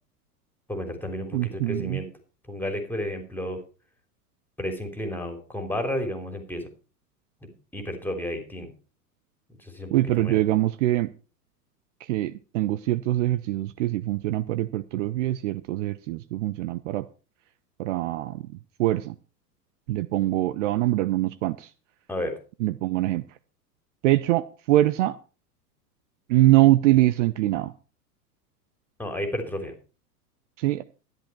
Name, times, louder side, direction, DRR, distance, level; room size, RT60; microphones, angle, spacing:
voice 1, 0.7-2.1 2.5-3.6 4.6-6.7 7.4-8.7 9.6-10.4 22.1-22.4 29.0-29.7, left 1 dB, 5° left, 5 dB, 3.3 m, -32 dB
voice 2, 1.3-2.0 9.9-11.1 12.0-17.1 17.8-18.5 18.8-19.1 19.9-21.7 22.6-23.2 24.0-25.2 26.3-27.7 30.6-30.8, right 15 dB, 50° right, 16 dB, 0.7 m, -23 dB
13.0 x 11.0 x 4.6 m, 0.35 s
figure-of-eight pair, 95°, 48 cm